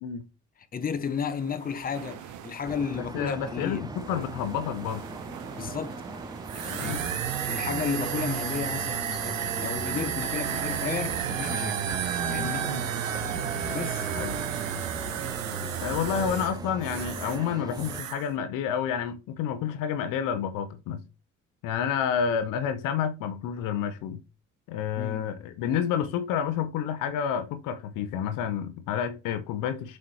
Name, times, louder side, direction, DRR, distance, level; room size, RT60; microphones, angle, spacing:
voice 1, 0.7-3.9 5.5-6.0 6.5-7.0 7.4-11.9 12.3-12.8 13.7-14.1 25.0-25.3, left 6 dB, 25° left, 0.8 m, -33 dB
sound 1, 1.0-15.9, right 9 dB, 50° right, 0.9 m, -45 dB
sound 2, 2.6-18.0, right 2 dB, 10° right, 0.6 m, -40 dB
voice 2, 3.0-5.0 6.8-7.0 12.6-12.9 14.1-14.3 15.8-21.0 21.6-24.2 24.7-30.0, left 8 dB, 55° left, 0.8 m, -29 dB
sound 3, 6.5-17.5 17.7-18.3, right 8 dB, 85° right, 0.6 m, -31 dB
7.4 x 3.2 x 4.2 m
figure-of-eight pair, 50°, 39 cm